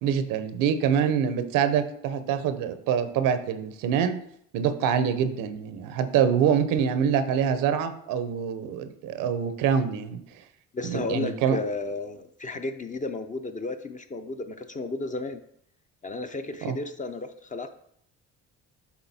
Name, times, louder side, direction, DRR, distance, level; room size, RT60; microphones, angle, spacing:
voice 1, 0.0-4.2 4.5-10.2 10.8-11.6 16.6-16.8, right 8 dB, 85° right, 11 dB, 0.7 m, -25 dB
voice 2, 10.7-15.4 16.0-17.7, left 3 dB, 25° left, 7 dB, 0.5 m, -33 dB
7.2 x 3.9 x 4.1 m, 0.68 s
cardioid pair, 95°, 32 cm